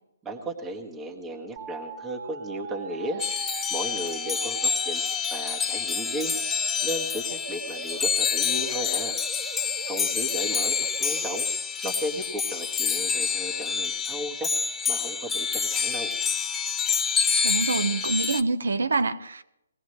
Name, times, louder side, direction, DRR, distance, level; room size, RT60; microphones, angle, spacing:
voice 1, 0.2-5.0 5.3-9.2 9.8-11.5 11.8-14.5 14.9-16.1, right 1 dB, 10° right, -1 dB, 1.5 m, -35 dB
sound 1, 1.6-11.6, right 7 dB, 35° right, 1.8 m, -41 dB
sound 2, 3.2-18.4, left 6 dB, 10° left, 0.6 m, -27 dB
voice 2, 17.4-19.4, right 3 dB, 80° right, 11 dB, 1.2 m, -26 dB
21.0 x 16.0 x 3.3 m, 0.81 s
hypercardioid pair, 160°, 0 cm